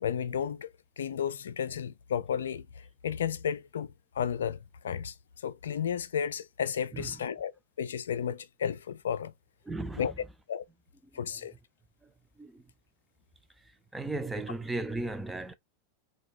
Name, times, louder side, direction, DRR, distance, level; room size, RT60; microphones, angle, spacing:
voice 1, 0.0-0.7 1.0-4.6 4.8-5.1 5.4-7.5 7.8-9.3 10.0-10.1 10.5-10.6 11.1-11.5, left 8 dB, 70° left, 0.4 m, -33 dB
voice 2, 9.7-10.1 11.1-11.4 12.0-12.1 12.4-12.6 13.6-13.7 13.9-15.6, right 2 dB, 10° right, 0.7 m, -36 dB
4.4 x 2.4 x 4.6 m
figure-of-eight pair, 85°, 0 cm